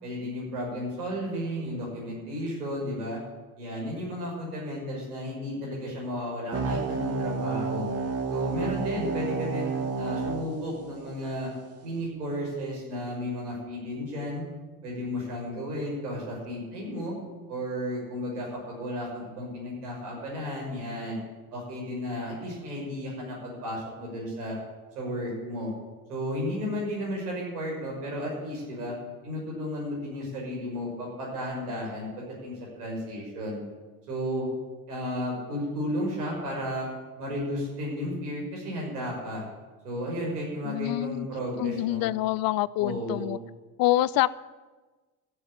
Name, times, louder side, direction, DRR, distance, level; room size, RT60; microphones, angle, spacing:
voice 1, 0.0-3.2 3.6-7.9 8.3-11.5 11.8-14.4 14.8-17.1 17.5-21.2 21.5-24.6 25.0-25.7 26.1-28.9 29.2-33.6 34.1-34.5 34.9-36.9 37.2-39.4 39.8-42.0 42.8-43.3, equal, 85° right, -2 dB, 5.8 m, -33 dB
sound 1, 6.5-11.5, right 4 dB, 30° right, 1.9 m, -31 dB
voice 2, 40.6-41.3 41.6-43.4 43.8-44.3, left 16 dB, 50° left, 19 dB, 0.6 m, -26 dB
14.0 x 7.8 x 8.7 m, 1.3 s
hypercardioid pair, 65°, 45 cm